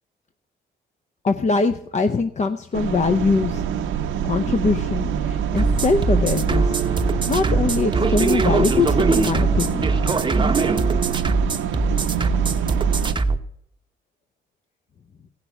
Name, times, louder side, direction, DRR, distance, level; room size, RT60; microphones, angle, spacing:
voice 1, 1.2-3.6 4.2-6.8 7.3-9.9, left 4 dB, 35° left, 8 dB, 0.7 m, -22 dB
sound 1, 2.7-13.2, right 8 dB, 85° right, 0.9 m, -25 dB
sound 2, 5.6-13.4, right 3 dB, 25° right, 0.8 m, -22 dB
16.0 x 6.0 x 9.1 m, 0.74 s
cardioid pair, 90°, 20 cm